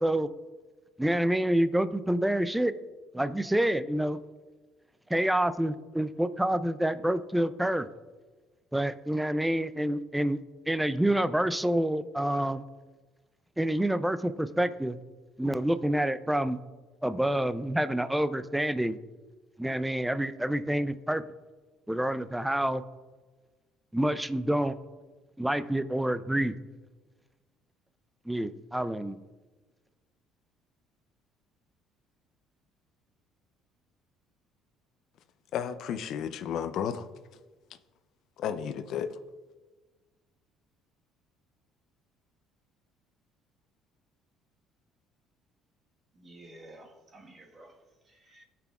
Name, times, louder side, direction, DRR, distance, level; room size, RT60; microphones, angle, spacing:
voice 1, 1.0-2.7 3.1-4.2 5.1-7.9 8.7-10.4 10.7-12.6 13.6-15.0 15.4-16.6 17.0-19.0 19.6-21.2 21.9-22.8 23.9-24.8 25.4-26.5 28.3-29.2, right 1 dB, 5° right, 0.4 m, -27 dB
voice 2, 35.5-37.1 38.4-39.2, left 8 dB, 60° left, 0.5 m, -33 dB
voice 3, 46.2-48.4, right 1 dB, 30° right, 1.4 m, -52 dB
16.5 x 5.9 x 2.4 m
cardioid pair, 120°, 0 cm